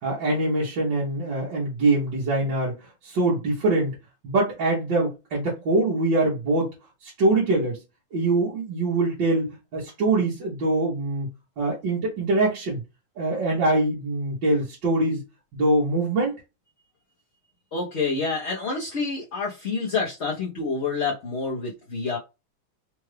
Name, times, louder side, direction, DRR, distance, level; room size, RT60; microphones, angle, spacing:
voice 1, 0.0-4.0 4.2-6.7 7.0-7.8 8.1-11.3 11.6-12.8 13.2-15.2 15.5-16.4, right 2 dB, 70° right, 2.1 m, -23 dB
voice 2, 17.7-22.2, left 4 dB, 40° left, 1.3 m, -28 dB
4.5 x 2.6 x 3.3 m
omnidirectional pair, 2.1 m